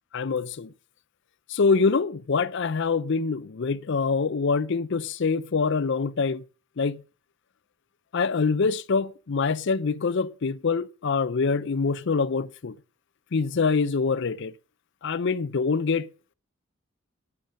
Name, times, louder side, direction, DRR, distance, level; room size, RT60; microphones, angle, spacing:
voice 1, 0.1-0.7 1.5-6.4 6.8-7.0 8.1-12.7 13.3-14.5 15.0-16.1, left 4 dB, 55° left, 0.5 m, -25 dB
11.0 x 8.9 x 6.4 m
head